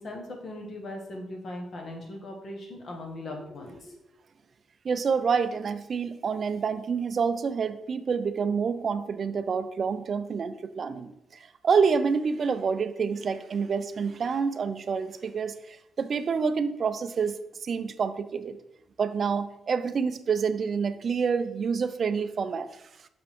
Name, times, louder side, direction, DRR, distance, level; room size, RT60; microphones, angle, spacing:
voice 1, 0.0-4.0, left 1 dB, 45° left, 1 dB, 1.2 m, -39 dB
voice 2, 4.8-11.1 11.6-18.6 19.0-22.7, right 5 dB, 40° right, 12 dB, 0.4 m, -27 dB
6.4 x 5.0 x 3.5 m, 0.84 s
cardioid pair, 150°, 0 cm